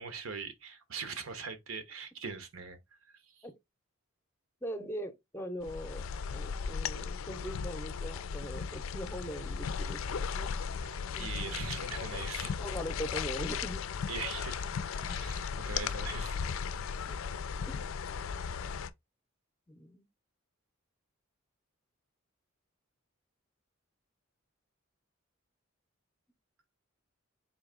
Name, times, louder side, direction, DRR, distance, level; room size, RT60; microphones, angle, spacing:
voice 1, 0.0-2.8 3.0-3.5 10.8-12.5 14.1-14.7 14.9-16.4 17.0-17.1, right 5 dB, 85° right, 0.9 m, -41 dB
voice 2, 4.6-10.5 11.1-11.6 12.6-13.8 15.0-15.2 17.1-17.2 17.7-17.9 19.7-20.1, equal, 10° left, 0.6 m, -41 dB
sound 1, 5.6-18.9, left 6 dB, 75° left, 0.4 m, -36 dB
3.9 x 2.9 x 3.6 m
head